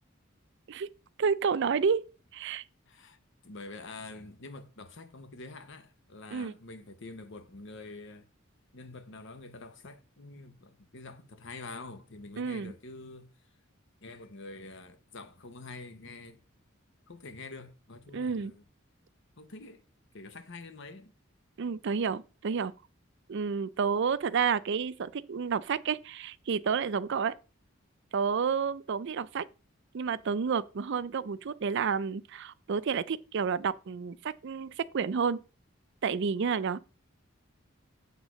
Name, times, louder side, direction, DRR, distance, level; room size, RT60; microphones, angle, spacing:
voice 1, 1.2-2.6 6.3-6.5 12.4-12.7 18.1-18.5 21.6-22.7 23.3-27.4 28.1-29.5 29.9-35.4 36.0-36.8, right 6 dB, 60° right, 0.4 m, -30 dB
voice 2, 2.9-3.2 3.4-8.3 8.7-13.3 14.0-16.4 17.1-18.6 19.4-19.8 20.1-21.1, left 3 dB, 60° left, 1.0 m, -46 dB
8.1 x 3.7 x 6.2 m
head